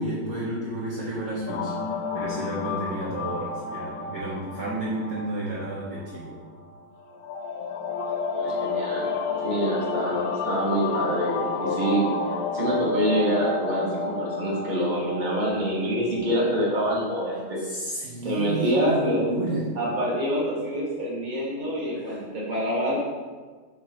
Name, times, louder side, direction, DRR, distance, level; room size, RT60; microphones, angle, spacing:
voice 1, 0.0-1.7 2.1-6.4 17.6-19.7 21.9-22.2, right 1 dB, 55° right, -6 dB, 1.2 m, -31 dB
sound 1, 1.5-16.7, left 4 dB, 80° left, 1.5 m, -31 dB
voice 2, 8.4-9.1 9.4-17.6 18.2-19.3 19.7-22.9, equal, 25° right, -5 dB, 1.4 m, -26 dB
8.5 x 3.0 x 4.2 m, 1.5 s
omnidirectional pair, 2.3 m